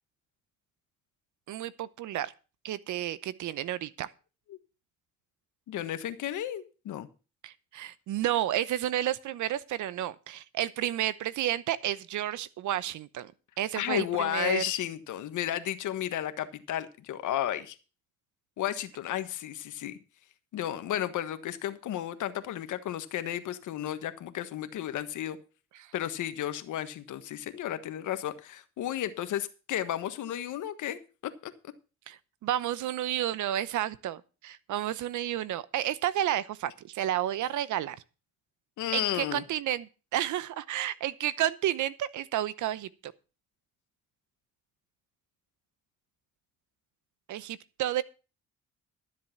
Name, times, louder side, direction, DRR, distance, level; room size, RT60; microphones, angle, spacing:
voice 1, 1.5-2.3 2.6-4.1 7.4-13.3 13.6-14.6 25.8-25.9 32.1-38.0 38.9-43.1 47.3-48.0, right 12 dB, 75° right, 0.8 m, -31 dB
voice 2, 5.7-7.1 13.7-17.8 18.6-20.0 20.5-25.4 25.9-31.7 38.8-39.4, left 12 dB, 80° left, 1.4 m, -33 dB
12.5 x 7.6 x 5.8 m
cardioid pair, 90°, 30 cm